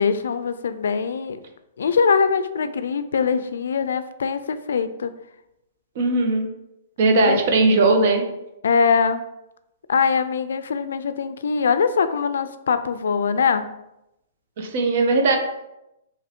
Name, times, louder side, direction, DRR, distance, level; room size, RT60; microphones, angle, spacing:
voice 1, 0.0-1.4 1.8-5.2 7.2-7.4 8.6-9.2 9.9-13.7, left 5 dB, 90° left, 11 dB, 0.3 m, -22 dB
voice 2, 6.0-6.5 7.0-8.3 14.6-15.4, right 3 dB, 50° right, 4 dB, 0.7 m, -18 dB
3.0 x 2.7 x 4.1 m, 0.87 s
hypercardioid pair, 165°, 0 cm